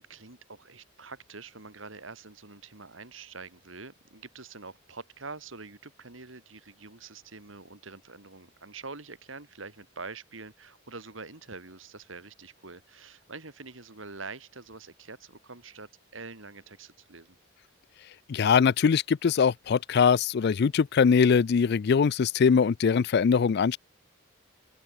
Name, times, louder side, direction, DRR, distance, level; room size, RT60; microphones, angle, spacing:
voice 1, 0.0-17.3, right 4 dB, 80° right, 3.3 m, -45 dB
voice 2, 18.3-23.8, left 6 dB, 55° left, 0.4 m, -22 dB
open air
head